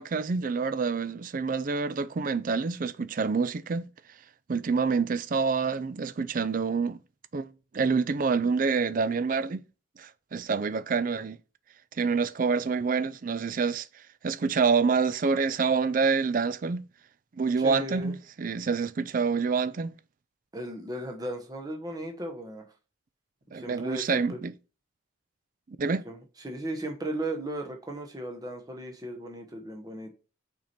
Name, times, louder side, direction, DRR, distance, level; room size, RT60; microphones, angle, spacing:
voice 1, 0.0-3.9 4.5-7.0 7.3-9.6 10.0-11.4 12.0-16.9 17.3-19.9 23.5-24.5 25.7-26.0, right 5 dB, 40° right, 0.4 m, -27 dB
voice 2, 17.6-18.1 20.5-22.7 23.5-24.4 26.1-26.2 26.4-30.1, right 1 dB, 20° right, 1.0 m, -36 dB
5.9 x 4.5 x 4.3 m
head